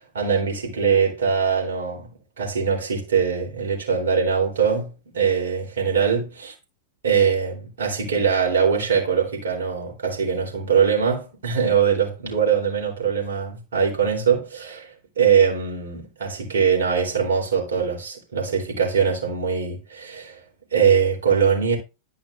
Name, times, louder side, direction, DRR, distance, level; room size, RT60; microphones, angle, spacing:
voice 1, 0.1-2.1 2.4-6.5 7.0-20.4 20.7-21.8, right 6 dB, 65° right, 3.7 m, -22 dB
12.0 x 5.4 x 2.6 m
figure-of-eight pair, 90°, 0 cm